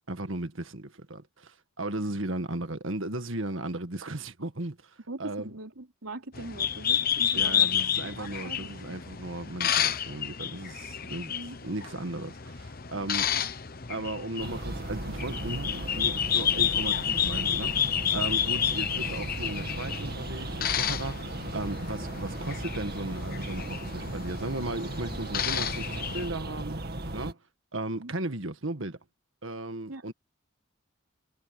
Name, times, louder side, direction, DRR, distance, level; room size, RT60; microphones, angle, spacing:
voice 1, 0.1-4.7 5.2-5.6 7.3-11.4 11.6-13.3 13.9-26.8 27.1-27.4 27.7-29.0 29.4-30.1, right 2 dB, 65° right, 1.8 m, -36 dB
voice 2, 5.1-7.7 8.1-8.8 11.3-11.6 13.3-13.4 28.0-28.1 29.9-30.1, right 2 dB, 80° right, 3.5 m, -41 dB
sound 1, 6.3-26.3, left 9 dB, 45° left, 1.0 m, -30 dB
sound 2, 14.4-27.3, right 1 dB, 50° right, 2.3 m, -36 dB
head